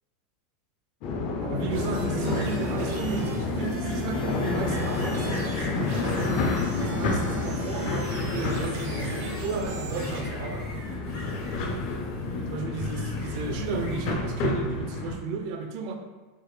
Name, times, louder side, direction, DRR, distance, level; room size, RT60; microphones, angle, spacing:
sound 1, 1.0-15.2, left 3 dB, 45° left, 0.4 m, -29 dB
voice 1, 1.4-6.5 6.8-10.8 12.5-15.9, right 5 dB, 50° right, 5 dB, 0.4 m, -33 dB
sound 2, 1.7-10.2, right 2 dB, 70° right, 1.0 m, -41 dB
sound 3, 1.9-14.2, left 1 dB, 80° left, 1.4 m, -45 dB
3.4 x 2.0 x 3.1 m, 1.3 s
supercardioid pair, 160°, 0 cm